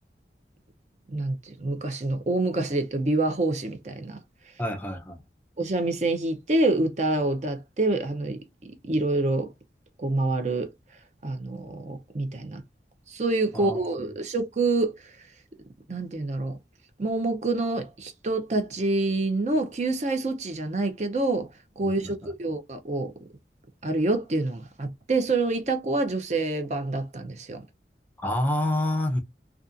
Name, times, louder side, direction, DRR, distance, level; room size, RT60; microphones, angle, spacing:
voice 1, 1.1-4.2 5.6-8.4 8.8-9.5 10.0-10.7 11.2-12.6 13.1-14.9 15.9-16.6 17.0-21.5 21.8-23.1 23.8-27.6, right 2 dB, 40° right, 0.5 m, -27 dB
voice 2, 4.6-5.2 13.5-13.8 22.0-22.1 28.2-29.2, left 1 dB, 10° left, 0.5 m, -27 dB
2.4 x 2.3 x 2.5 m
head